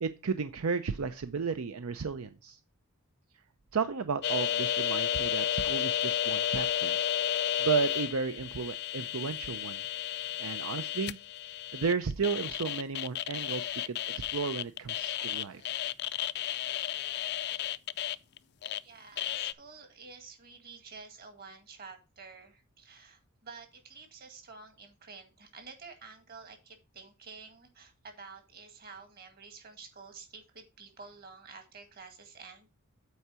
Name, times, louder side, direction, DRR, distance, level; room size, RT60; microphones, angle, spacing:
voice 1, 0.0-2.6 3.7-7.0 7.6-9.8 10.4-11.2 11.7-15.6, right 5 dB, 75° right, 10 dB, 0.6 m, -33 dB
sound 1, 4.2-18.8 19.2-19.5, left 10 dB, 50° left, 0.4 m, -32 dB
voice 2, 18.8-32.7, right 4 dB, 45° right, 6 dB, 1.9 m, -50 dB
8.4 x 4.6 x 6.1 m, 0.29 s
head